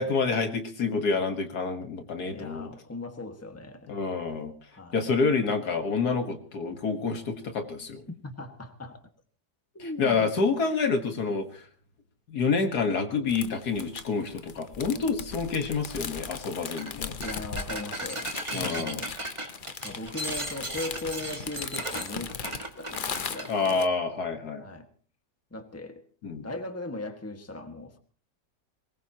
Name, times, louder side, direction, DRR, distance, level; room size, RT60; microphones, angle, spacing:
voice 1, 0.0-2.7 3.9-4.5 4.9-8.0 9.8-11.7 12.3-17.2 18.5-19.1 23.5-24.7 26.2-26.5, left 4 dB, 60° left, 6 dB, 2.0 m, -28 dB
voice 2, 2.3-3.9 4.7-5.0 8.2-9.0 9.7-10.3 17.2-19.2 19.8-23.9 24.6-24.9 25.5-28.0, left 2 dB, 10° left, 6 dB, 1.5 m, -39 dB
sound 1, 13.3-23.9, left 6 dB, 45° left, 0.6 m, -38 dB
sound 2, 16.7-16.9 17.2-23.5, right 1 dB, 20° right, 1.5 m, -36 dB
23.0 x 20.0 x 2.9 m, 0.40 s
omnidirectional pair, 1.9 m